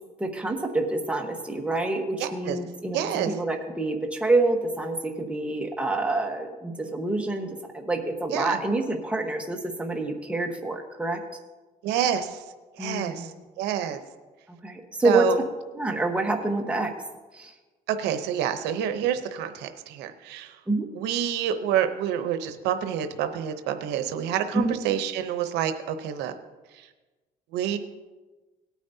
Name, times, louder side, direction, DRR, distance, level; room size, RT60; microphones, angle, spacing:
voice 1, 0.2-11.2 12.8-13.4 13.8-13.9 14.6-15.3 15.7-16.9 17.3-17.5 20.7-20.9 24.5-24.7, right 2 dB, 5° right, 2 dB, 1.3 m, -27 dB
voice 2, 2.2-2.6 2.9-3.3 8.3-8.6 11.8-12.4 12.8-13.3 13.6-14.0 15.0-15.4 17.9-20.5 20.9-26.3 27.5-27.8, right 9 dB, 90° right, 9 dB, 0.8 m, -27 dB
18.0 x 9.3 x 2.7 m, 1.2 s
cardioid pair, 110°, 17 cm